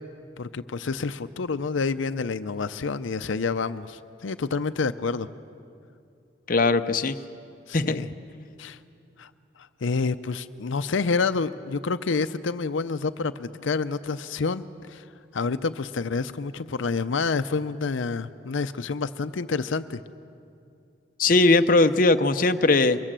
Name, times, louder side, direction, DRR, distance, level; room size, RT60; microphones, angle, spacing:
voice 1, 0.4-5.3 7.7-8.1 8.6-8.8 9.2-9.3 9.6-15.1 15.3-20.0, left 4 dB, 85° left, 12 dB, 0.6 m, -28 dB
voice 2, 6.5-7.1 7.7-8.0 21.2-23.0, left 3 dB, 45° left, 8 dB, 0.7 m, -19 dB
23.5 x 23.0 x 7.5 m, 2.5 s
head